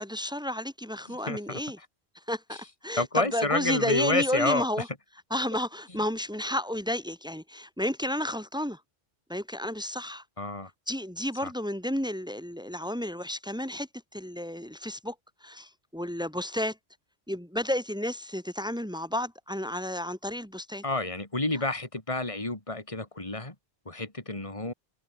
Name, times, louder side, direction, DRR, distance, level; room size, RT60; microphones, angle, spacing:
voice 1, 0.0-1.8 2.3-4.9 5.3-8.8 9.3-10.2 10.9-15.2 15.4-16.8 17.3-20.8, left 1 dB, 5° right, 3.5 m, -32 dB
voice 2, 1.1-1.9 2.5-2.6 3.0-4.6 10.4-10.7 11.4-11.5 20.8-23.5 23.8-24.7, left 2 dB, 30° left, 3.4 m, -29 dB
omnidirectional pair, 1.1 m